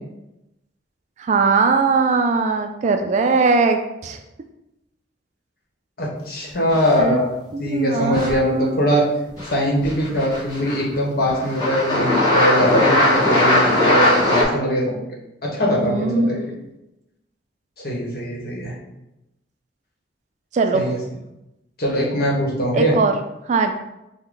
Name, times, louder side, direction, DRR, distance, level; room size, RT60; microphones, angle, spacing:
voice 1, 1.2-4.2 7.0-7.2 7.5-8.7 15.8-16.6 20.5-20.9 22.7-23.1 23.5-23.8, right 4 dB, 40° right, 5 dB, 0.3 m, -20 dB
voice 2, 6.0-7.3 7.6-9.1 9.5-14.9 15.4-16.5 17.8-18.7 20.7-21.0 21.8-23.0, equal, 60° left, -3 dB, 1.2 m, -21 dB
sound 1, 6.7-7.2 8.1-8.4 9.4-9.5 9.8-10.9 11.3-14.4, left 1 dB, 20° left, 1.4 m, -19 dB
5.6 x 2.2 x 3.7 m, 0.92 s
head